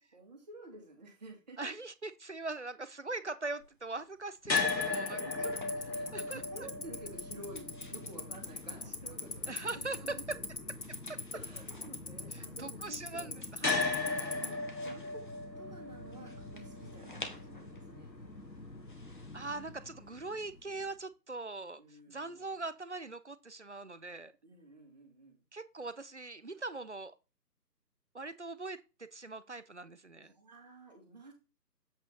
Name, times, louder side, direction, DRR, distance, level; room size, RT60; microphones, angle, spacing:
voice 1, 0.1-1.7 4.9-5.6 5.9-9.6 9.9-10.7 11.3-13.5 14.3-15.3 15.6-18.1 21.8-22.7 24.4-25.4 30.2-31.3, right 2 dB, 25° right, 1.9 m, -51 dB
voice 2, 1.6-5.2 6.1-6.4 9.5-10.4 11.1-11.2 12.3-14.3 19.3-24.3 25.5-27.1 28.1-30.3, right 3 dB, 45° right, 0.5 m, -41 dB
sound 1, 3.6-20.8, left 2 dB, 30° left, 0.9 m, -55 dB
sound 2, 4.4-20.6, left 3 dB, 85° left, 1.6 m, -39 dB
Tick-tock, 4.6-14.5, left 4 dB, 70° left, 1.4 m, -36 dB
8.0 x 4.9 x 3.9 m
figure-of-eight pair, 155°, 49 cm